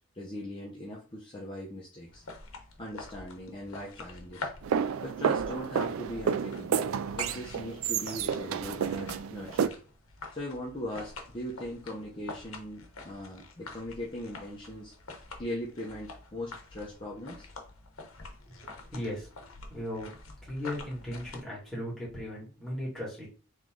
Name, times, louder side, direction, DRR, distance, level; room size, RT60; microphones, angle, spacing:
voice 1, 0.1-2.2 2.8-4.5 5.0-6.9 7.2-9.8 10.3-14.9 15.4-17.5, left 1 dB, 25° left, -4 dB, 0.8 m, -40 dB
sound 1, 2.1-21.4, left 3 dB, 90° left, 0.9 m, -47 dB
sound 2, 4.6-9.7, right 7 dB, 80° right, 0.3 m, -30 dB
voice 2, 18.9-20.1 20.5-23.3, left 1 dB, ahead, -7 dB, 2.2 m, -37 dB
3.7 x 3.2 x 3.7 m, 0.39 s
head